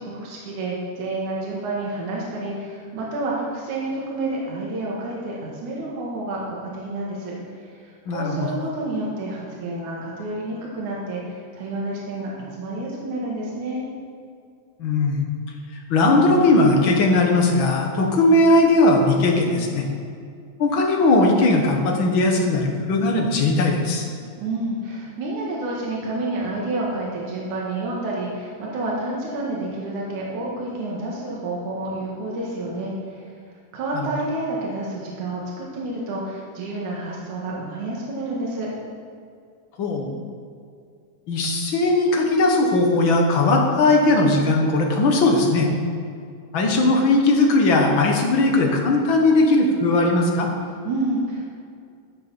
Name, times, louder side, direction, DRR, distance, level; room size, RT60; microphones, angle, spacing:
voice 1, 0.0-7.4 7.8-13.9 24.4-33.2 33.7-38.7 50.8-51.5, right 2 dB, 70° right, -4 dB, 3.1 m, -29 dB
voice 2, 8.1-8.6 14.8-15.2 15.9-19.8 20.6-24.0 33.9-34.1 39.8-40.2 41.3-45.7 46.5-50.5, left 2 dB, 50° left, 1 dB, 1.7 m, -18 dB
12.0 x 6.9 x 7.0 m, 2.3 s
omnidirectional pair, 3.7 m